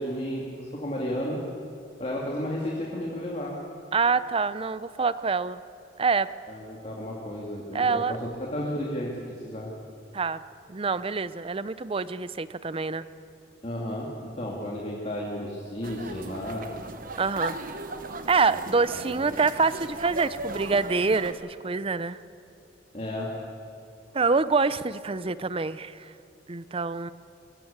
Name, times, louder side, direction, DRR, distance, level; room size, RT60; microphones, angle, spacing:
voice 1, 0.0-1.4 2.0-3.6 6.5-9.7 13.6-16.7 18.5-18.6 19.1-19.2 22.9-23.3, equal, 35° left, -3 dB, 2.5 m, -33 dB
voice 2, 3.9-5.6 6.0-6.3 7.7-8.2 10.1-10.4 10.7-13.1 17.2-17.6 18.3-22.2 24.1-26.1 26.5-27.1, right 4 dB, 30° right, 15 dB, 0.6 m, -26 dB
sound 1, 15.8-21.3, right 2 dB, 50° right, 1.2 m, -37 dB
22.0 x 15.5 x 8.7 m, 2.6 s
head